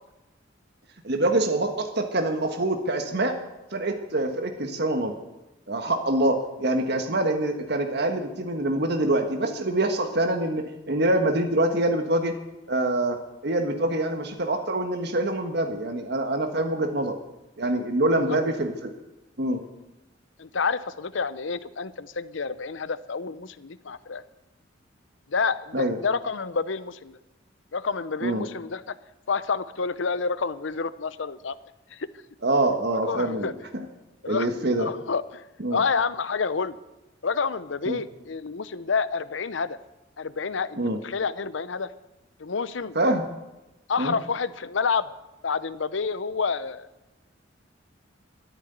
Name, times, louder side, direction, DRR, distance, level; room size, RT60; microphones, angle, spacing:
voice 1, 1.0-3.4 3.7-5.1 5.7-12.4 12.7-13.2 13.4-17.2 17.6-18.9 19.4-19.6 25.7-26.0 28.2-28.4 32.4-33.8 34.3-34.9 35.6-35.8 37.9-38.0 40.8-41.0 42.9-43.3 44.0-44.2, right 1 dB, 60° right, 5 dB, 1.4 m, -25 dB
voice 2, 20.4-24.2 25.3-27.2 27.7-28.9 29.3-31.6 31.9-32.1 33.0-33.5 34.2-34.5 34.8-35.4 35.7-36.8 37.2-39.8 40.2-41.9 42.4-43.0 43.9-45.1 45.4-46.9, left 5 dB, 75° left, 15 dB, 0.7 m, -29 dB
13.0 x 10.5 x 9.3 m, 0.99 s
head